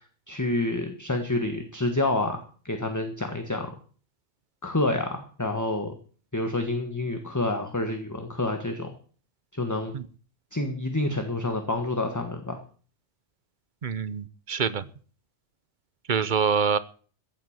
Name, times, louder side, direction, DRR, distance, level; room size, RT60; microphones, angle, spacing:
voice 1, 0.0-3.7 4.6-5.9 6.3-8.9 9.5-9.9 10.5-12.6, left 2 dB, 15° left, 5 dB, 1.5 m, -28 dB
voice 2, 13.8-14.8 16.1-16.8, right 6 dB, 45° right, 16 dB, 0.8 m, -25 dB
15.5 x 7.9 x 7.4 m, 0.42 s
omnidirectional pair, 1.3 m